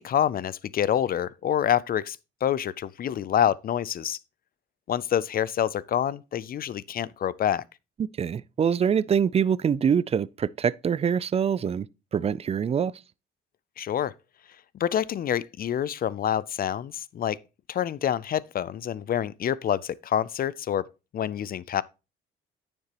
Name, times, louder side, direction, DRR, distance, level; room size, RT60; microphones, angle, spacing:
voice 1, 0.0-4.2 4.9-7.6 13.8-14.1 14.7-17.4 17.7-20.9 21.1-21.8, left 10 dB, 50° left, 0.4 m, -27 dB
voice 2, 8.0-11.9 12.1-12.9, right 7 dB, 30° right, 0.3 m, -24 dB
9.7 x 6.7 x 2.9 m
cardioid pair, 90°, 20 cm